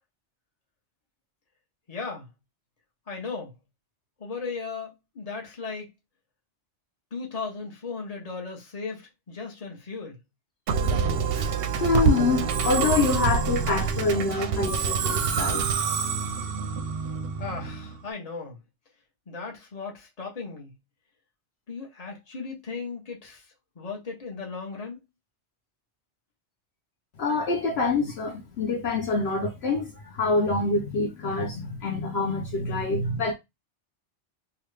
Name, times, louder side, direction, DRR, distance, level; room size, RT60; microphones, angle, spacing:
voice 1, 1.9-2.3 3.1-3.5 4.2-5.9 7.1-10.2 17.4-18.6 19.3-20.7 21.7-23.4 23.8-25.0, left 4 dB, 35° left, 1.0 m, -36 dB
Musical instrument, 10.7-18.0, right 6 dB, 65° right, 0.7 m, -26 dB
voice 2, 11.4-15.7 27.2-33.3, left 3 dB, 65° left, 0.9 m, -26 dB
3.0 x 2.4 x 3.2 m
omnidirectional pair, 1.2 m